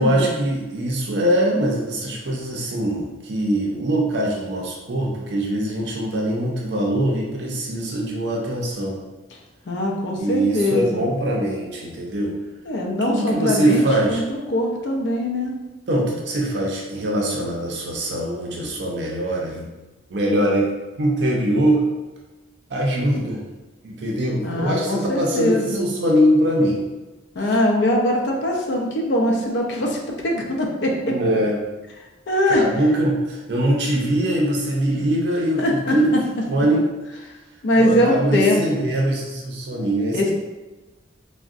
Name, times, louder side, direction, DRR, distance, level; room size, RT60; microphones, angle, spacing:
voice 1, 0.0-9.0 10.2-12.3 13.0-14.2 15.9-19.7 20.1-20.7 21.0-21.8 22.7-23.4 23.8-26.8 27.5-27.6 29.8-29.9 31.1-31.6 32.5-36.1 36.5-36.9 37.8-40.3, right 1 dB, 65° right, -2 dB, 0.5 m, -22 dB
voice 2, 9.7-11.0 12.7-15.5 24.4-25.8 27.4-31.2 32.3-32.6 35.6-36.0 37.6-38.8 40.1-40.3, left 1 dB, 70° left, -1 dB, 0.5 m, -22 dB
3.5 x 2.1 x 2.4 m, 1.2 s
head